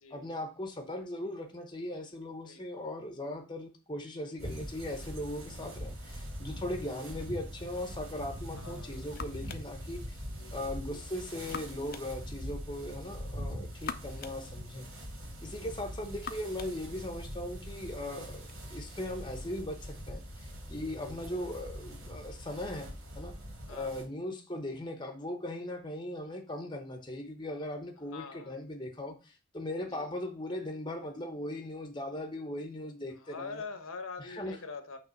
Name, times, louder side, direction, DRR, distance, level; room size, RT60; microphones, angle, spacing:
voice 1, 0.1-10.2 10.5-15.0 15.4-22.9 23.1-23.3 23.7-33.6 34.2-34.6, left 1 dB, 20° left, 4 dB, 0.9 m, -39 dB
voice 2, 2.4-2.9 6.9-7.1 8.5-9.0 10.3-11.0 18.0-18.2 21.0-21.2 23.7-23.9 28.1-28.6 29.9-30.1 33.2-35.0, left 4 dB, 75° left, 8 dB, 1.0 m, -45 dB
sound 1, 4.4-24.0, equal, 80° right, 2.9 m, -43 dB
sound 2, 8.5-18.6, left 6 dB, 45° left, 0.5 m, -49 dB
5.9 x 3.3 x 5.8 m, 0.35 s
head